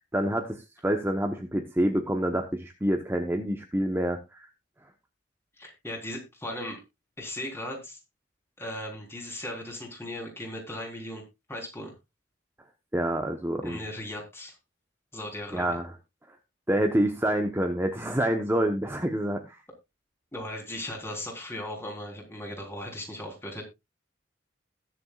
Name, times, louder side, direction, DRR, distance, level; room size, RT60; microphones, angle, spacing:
voice 1, 0.1-4.5 12.9-13.8 15.5-15.9 16.7-19.6, right 1 dB, 10° right, 4 dB, 1.0 m, -27 dB
voice 2, 5.6-6.8 7.2-8.0 8.6-11.2 11.5-11.9 13.6-14.5 15.1-15.8 20.3-23.6, left 1 dB, 15° left, 1 dB, 3.8 m, -37 dB
21.0 x 7.0 x 2.4 m, 0.24 s
head